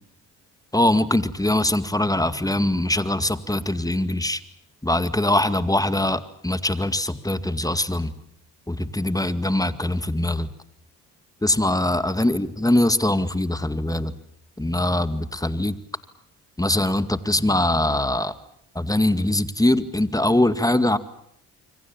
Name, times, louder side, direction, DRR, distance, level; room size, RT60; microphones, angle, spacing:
voice 1, 0.7-4.4 4.8-8.1 8.7-10.5 11.4-14.1 14.6-15.8 16.6-18.3 18.8-21.0, left 1 dB, 10° left, 13 dB, 2.1 m, -22 dB
27.5 x 24.5 x 7.3 m, 0.71 s
supercardioid pair, 65°, 42 cm